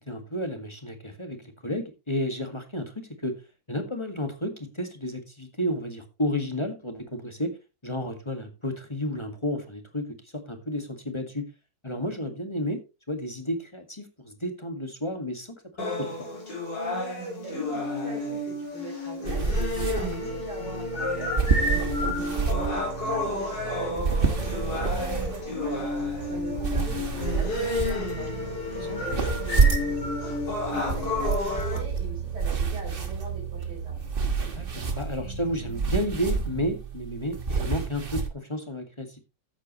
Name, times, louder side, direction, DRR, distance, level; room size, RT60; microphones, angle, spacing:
voice 1, 0.1-3.4 3.7-7.5 7.8-11.5 11.8-12.8 13.1-16.3 28.2-28.3 28.7-29.1 34.6-39.2, left 1 dB, 15° left, 6 dB, 1.8 m, -32 dB
sound 1, 15.8-31.8, left 2 dB, 90° left, 5.4 m, -31 dB
voice 2, 17.4-25.9 26.3-28.4 28.8-33.9, right 3 dB, 65° right, -3 dB, 4.7 m, -42 dB
sound 2, 19.3-38.3, right 5 dB, 35° right, 1.4 m, -29 dB
sound 3, 22.5-36.7, right 5 dB, 90° right, 5.4 m, -39 dB
13.5 x 8.3 x 3.1 m, 0.27 s
omnidirectional pair, 1.9 m